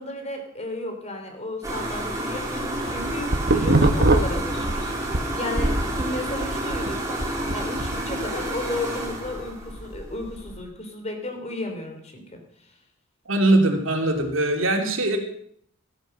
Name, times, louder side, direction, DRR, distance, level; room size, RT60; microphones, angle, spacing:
voice 1, 0.0-7.2 7.5-12.4, left 2 dB, 30° left, 5 dB, 3.2 m, -34 dB
sound 1, 1.6-10.6, right 1 dB, 15° right, 3.6 m, -30 dB
sound 2, 2.7-5.2 5.6-7.9, right 2 dB, 50° right, 1.2 m, -22 dB
voice 2, 13.3-15.2, right 2 dB, 75° right, 3 dB, 2.9 m, -21 dB
15.0 x 11.0 x 6.6 m, 0.64 s
head